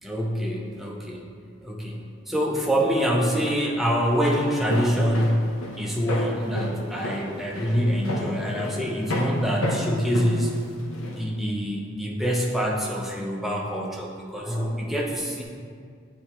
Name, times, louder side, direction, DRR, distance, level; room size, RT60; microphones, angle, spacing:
voice 1, 0.0-1.3 1.6-5.4 5.8-10.5 11.1-15.4, equal, ahead, -3 dB, 0.6 m, -25 dB
Walk footsteps, 4.0-11.2, left 1 dB, 60° left, 0.9 m, -31 dB
8.5 x 4.2 x 3.0 m, 2.1 s
head